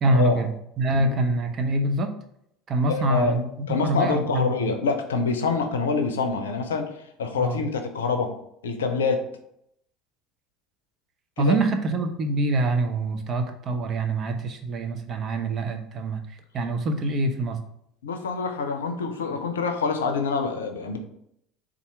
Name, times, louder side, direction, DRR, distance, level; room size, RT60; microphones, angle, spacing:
voice 1, 0.0-2.1 2.7-4.7 7.4-7.7 11.4-17.6, right 2 dB, 40° right, 5 dB, 0.7 m, -25 dB
voice 2, 0.9-1.3 2.9-6.9 7.2-8.3 8.6-9.2 11.4-11.6 18.0-21.0, left 4 dB, 80° left, 6 dB, 0.5 m, -26 dB
4.2 x 2.5 x 4.8 m, 0.75 s
hypercardioid pair, 70°, 0 cm